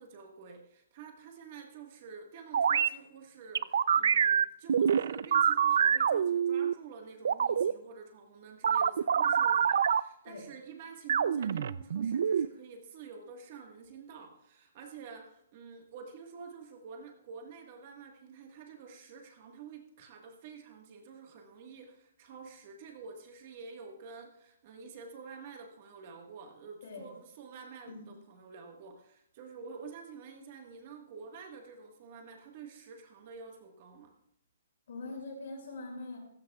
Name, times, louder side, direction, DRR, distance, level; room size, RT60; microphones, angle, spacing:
voice 1, 0.0-34.1, right 5 dB, 30° right, 3 dB, 1.5 m, -49 dB
sound 1, 2.5-2.9 3.5-6.7 7.2-7.7 8.6-10.0 11.1-12.5, right 8 dB, 55° right, 0.4 m, -26 dB
voice 2, 26.8-27.1 27.9-28.0 34.9-36.2, left 2 dB, 55° left, 0 dB, 6.4 m, -42 dB
18.0 x 15.5 x 2.4 m, 0.77 s
hypercardioid pair, 175°, 0 cm